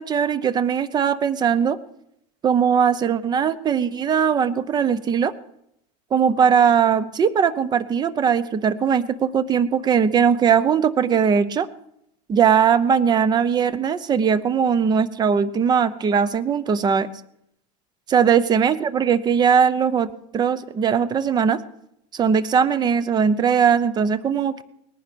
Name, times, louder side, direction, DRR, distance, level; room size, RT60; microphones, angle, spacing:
voice 1, 0.0-1.8 2.4-5.3 6.1-11.7 12.3-17.1 18.1-21.6 22.1-24.6, right 7 dB, 20° right, 16 dB, 0.7 m, -20 dB
19.5 x 10.5 x 6.9 m, 0.77 s
supercardioid pair, 145°, 21 cm